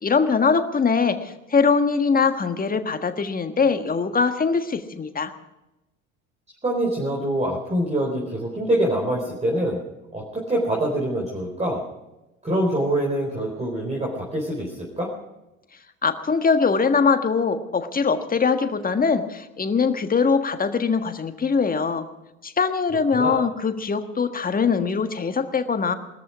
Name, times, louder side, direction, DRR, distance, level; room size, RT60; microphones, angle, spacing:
voice 1, 0.0-5.3 16.0-22.0 22.4-25.9, left 5 dB, 20° left, 8 dB, 1.5 m, -22 dB
voice 2, 6.6-9.8 10.1-11.8 12.4-15.1 23.1-23.4, right 1 dB, 15° right, -1 dB, 4.3 m, -25 dB
21.0 x 13.5 x 4.9 m, 0.95 s
figure-of-eight pair, 65°, 41 cm